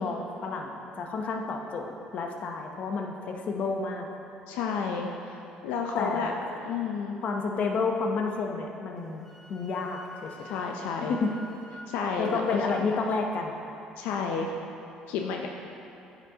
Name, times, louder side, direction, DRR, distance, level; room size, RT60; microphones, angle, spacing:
voice 1, 0.0-4.1 6.0-6.3 7.2-9.2 9.5-10.5 11.0-11.3 12.2-13.6, left 4 dB, 55° left, 2 dB, 0.8 m, -30 dB
voice 2, 4.5-6.3 6.6-7.2 10.4-11.2 11.9-12.6 14.0-14.5 15.1-15.5, left 5 dB, 90° left, 1 dB, 0.5 m, -31 dB
Wind instrument woodwind instrument, 9.0-11.9, left 2 dB, 5° left, 1.2 m, -48 dB
9.5 x 5.9 x 2.8 m, 2.8 s
cardioid pair, 105°, 3 cm